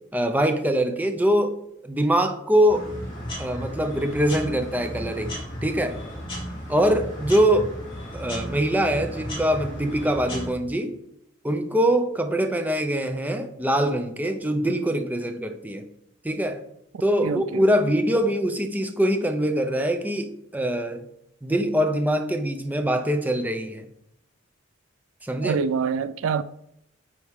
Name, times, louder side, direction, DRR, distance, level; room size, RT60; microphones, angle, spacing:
voice 1, 0.1-1.6 1.8-2.9 3.4-6.0 6.7-7.7 8.1-10.9 11.4-15.8 16.2-16.6 17.0-21.0 21.4-23.9 25.2-25.6, right 1 dB, 10° right, 0.6 m, -23 dB
sound 1, 2.7-10.5, equal, 25° left, 3.0 m, -35 dB
voice 2, 17.2-17.6 25.4-26.4, right 6 dB, 75° right, 0.3 m, -25 dB
9.4 x 4.2 x 3.6 m
head